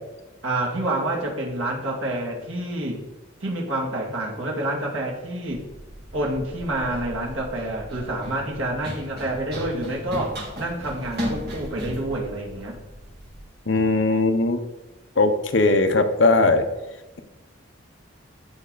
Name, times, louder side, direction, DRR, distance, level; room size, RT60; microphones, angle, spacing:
voice 1, 0.4-3.0 3.4-5.7 6.1-12.8, right 1 dB, 75° right, -1 dB, 2.5 m, -28 dB
Run, 5.5-13.4, equal, 50° right, 3.4 m, -36 dB
voice 2, 13.7-14.6 15.2-16.6, left 3 dB, 65° left, 7 dB, 1.0 m, -19 dB
15.0 x 5.7 x 4.1 m, 1.1 s
head